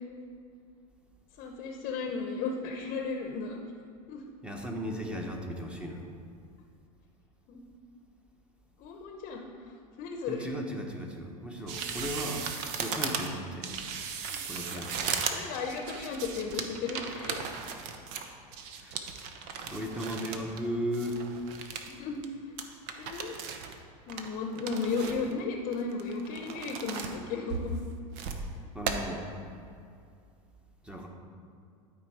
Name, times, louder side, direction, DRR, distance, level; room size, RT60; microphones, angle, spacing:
voice 1, 1.4-3.6 4.1-4.2 7.5-7.6 8.8-9.5 10.0-10.5 14.3-14.4 15.0-17.5 21.9-22.2 23.0-23.3 24.1-27.7, left 4 dB, 45° left, 3 dB, 0.8 m, -35 dB
voice 2, 4.4-6.1 10.3-12.5 12.8-13.7 14.4-15.2 18.8-19.1 19.6-21.2 28.7-29.3 30.8-31.1, equal, 5° right, 1 dB, 1.1 m, -36 dB
sound 1, 11.7-20.6 20.9-21.9 22.2-22.3 22.6-23.7 24.1-25.3 25.7-27.2 27.5-28.4 28.9-29.0, right 6 dB, 55° right, 0.9 m, -36 dB
12.0 x 4.6 x 4.9 m, 2.4 s
supercardioid pair, 120°, 19 cm